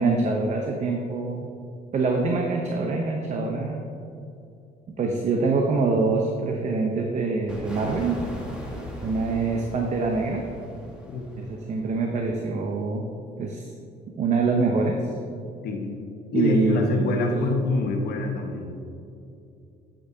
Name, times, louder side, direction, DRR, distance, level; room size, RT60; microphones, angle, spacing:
voice 1, 0.0-1.5 1.9-3.9 5.0-8.2 9.0-10.4 11.4-13.1 13.4-13.7 14.2-15.1 16.3-17.4, right 3 dB, 45° right, 2 dB, 0.7 m, -25 dB
sound 1, 7.5-12.1, left 1 dB, 5° right, 1.5 m, -38 dB
voice 2, 15.6-16.0 16.3-18.7, left 3 dB, 65° left, 2 dB, 1.1 m, -25 dB
8.5 x 7.8 x 2.7 m, 2.6 s
cardioid pair, 110°, 17 cm